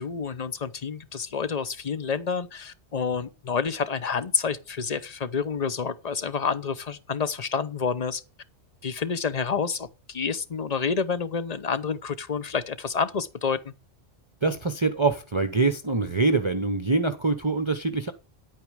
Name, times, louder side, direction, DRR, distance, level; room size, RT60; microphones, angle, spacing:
voice 1, 0.0-8.2 8.8-13.7, left 5 dB, 35° left, 0.9 m, -29 dB
voice 2, 14.4-18.1, right 3 dB, 30° right, 0.8 m, -24 dB
10.5 x 8.7 x 4.8 m
omnidirectional pair, 1.2 m